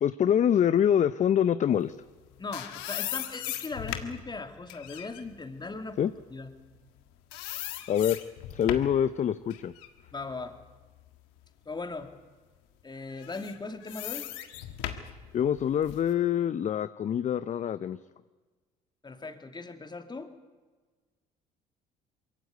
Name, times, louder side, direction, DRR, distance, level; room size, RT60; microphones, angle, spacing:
voice 1, 0.0-2.0 6.0-6.1 7.9-8.2 8.5-9.7 15.3-18.0, left 9 dB, 45° left, 15 dB, 0.6 m, -25 dB
sound 1, 2.1-7.0 7.3-9.0 9.5-11.5 11.9-12.1 13.1-16.1, left 12 dB, 80° left, 1.6 m, -39 dB
voice 2, 2.4-6.5 10.1-10.6 11.7-12.1 12.8-14.3 19.0-20.3, left 3 dB, 25° left, 7 dB, 2.5 m, -39 dB
22.0 x 16.0 x 9.3 m, 1.3 s
hypercardioid pair, 60°, 18 cm